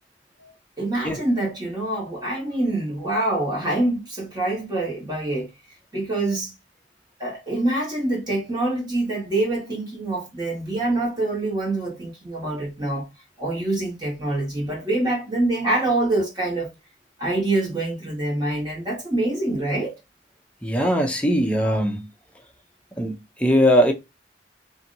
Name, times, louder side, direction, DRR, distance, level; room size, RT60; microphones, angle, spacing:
voice 1, 0.4-5.5 5.9-6.5 7.2-13.1 13.4-16.7 17.2-19.9, right 2 dB, 25° right, 1.4 m, -25 dB
voice 2, 20.6-22.1 23.0-23.1 23.4-23.9, equal, 5° left, 0.6 m, -20 dB
2.8 x 2.6 x 2.6 m
head